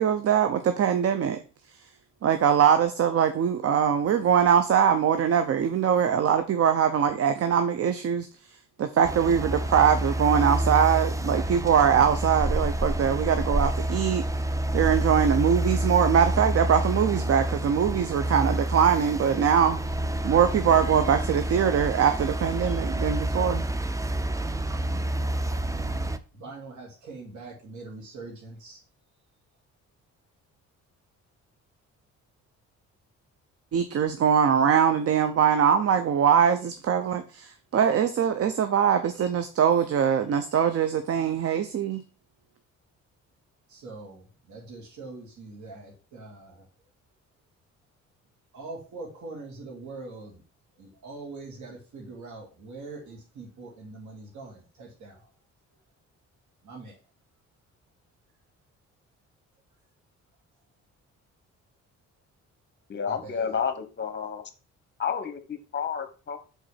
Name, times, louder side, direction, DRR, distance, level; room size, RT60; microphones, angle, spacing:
voice 1, 0.0-1.4 2.2-8.3 8.8-14.2 14.7-19.8 20.2-23.7 33.7-42.0, right 8 dB, 50° right, 8 dB, 0.7 m, -22 dB
sound 1, 9.0-26.2, right 1 dB, 10° right, 0.4 m, -28 dB
voice 2, 25.7-28.8 43.7-46.7 48.5-50.4 50.8-55.3 56.6-57.0 63.1-63.6, right 3 dB, 75° right, -2 dB, 2.5 m, -43 dB
voice 3, 62.9-64.4 65.0-66.4, left 7 dB, 35° left, 10 dB, 1.2 m, -30 dB
5.1 x 3.9 x 5.6 m, 0.35 s
cardioid pair, 90°, 30 cm